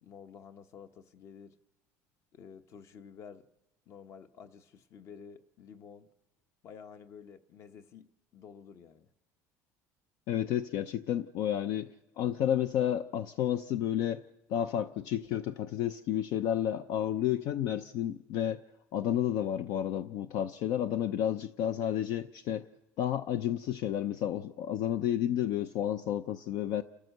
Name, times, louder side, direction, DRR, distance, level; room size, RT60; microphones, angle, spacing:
voice 1, 0.0-1.6 2.3-3.5 3.9-6.1 6.6-9.1, left 7 dB, 50° left, 1.1 m, -51 dB
voice 2, 10.3-11.9 12.2-14.2 14.5-18.6 18.9-22.7 23.0-26.8, left 10 dB, 65° left, 0.6 m, -31 dB
29.0 x 14.0 x 6.6 m
cardioid pair, 145°, 7 cm